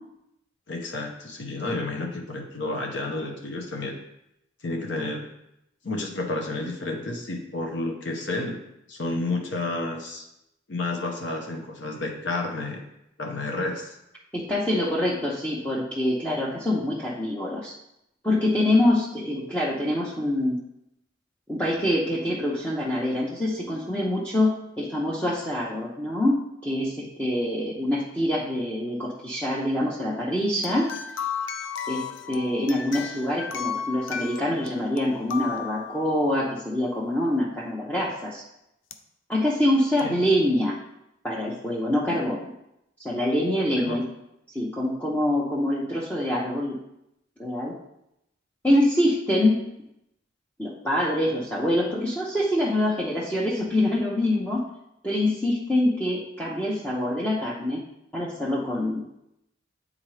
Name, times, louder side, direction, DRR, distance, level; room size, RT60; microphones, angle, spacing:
voice 1, 0.7-4.0 4.6-5.2 5.8-8.6 8.9-10.2 10.7-12.8 13.2-13.9 40.0-40.1 43.7-44.0, left 2 dB, 65° left, 2 dB, 0.8 m, -30 dB
voice 2, 14.3-17.7 18.2-20.6 21.5-26.4 26.6-30.9 31.9-38.4 39.3-40.7 41.2-42.5 43.0-44.1 44.5-46.8 47.4-47.7 48.6-49.6 50.6-54.6 55.0-57.8 58.1-59.1, left 1 dB, 10° left, -6 dB, 0.7 m, -25 dB
sound 1, 30.6-36.6 38.9-39.0 40.0-40.1, left 7 dB, 90° left, 0.5 m, -34 dB
8.7 x 3.8 x 3.2 m, 0.83 s
head